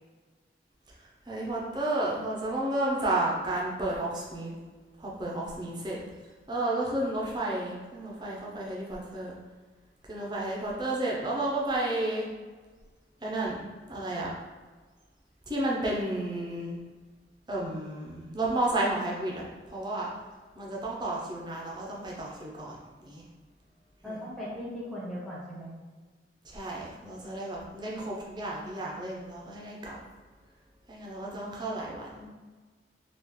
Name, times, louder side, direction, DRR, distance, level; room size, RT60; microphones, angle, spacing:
voice 1, 1.0-4.5 5.0-6.0 6.5-9.3 10.1-12.3 13.2-13.6 13.9-14.3 15.5-16.8 17.5-20.1 20.5-23.2 24.0-24.2 26.4-30.0 30.9-32.3, right 1 dB, 25° right, -4 dB, 0.6 m, -32 dB
voice 2, 24.0-25.7, equal, ahead, -8 dB, 0.9 m, -38 dB
3.6 x 2.4 x 3.0 m, 1.4 s
head